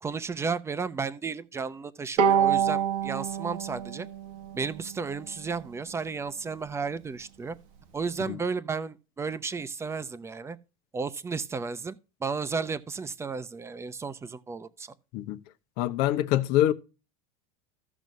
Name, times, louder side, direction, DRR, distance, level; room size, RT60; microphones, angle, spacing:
voice 1, 0.0-4.1 4.5-7.6 7.9-10.6 10.9-14.9, right 5 dB, 15° right, 0.7 m, -33 dB
Bowed string instrument, 2.2-5.5, right 8 dB, 70° right, 1.3 m, -27 dB
voice 2, 15.8-16.7, left 13 dB, 60° left, 1.0 m, -24 dB
15.5 x 6.0 x 2.7 m
supercardioid pair, 125°, 19 cm